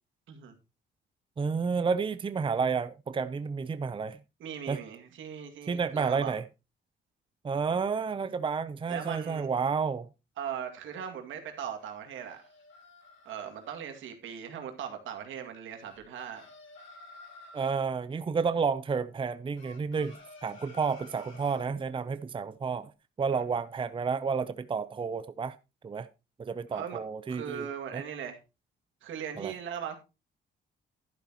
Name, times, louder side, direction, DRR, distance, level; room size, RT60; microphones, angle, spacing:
voice 1, 1.4-4.2 4.7-4.8 5.7-6.4 7.4-10.1 17.5-22.9 23.2-25.5 25.8-26.1 26.4-27.7 27.9-28.0 29.4-29.5, right 5 dB, 25° right, 0.6 m, -31 dB
voice 2, 4.4-6.4 8.9-9.5 10.4-12.4 13.3-16.5 23.3-23.4 26.7-27.0 27.3-28.4 29.0-30.0, right 8 dB, 80° right, 2.2 m, -39 dB
sound 1, 11.8-13.8 15.8-17.8 19.6-21.7, left 2 dB, 80° left, 6.9 m, -52 dB
11.5 x 10.5 x 2.9 m
cardioid pair, 90°, 20 cm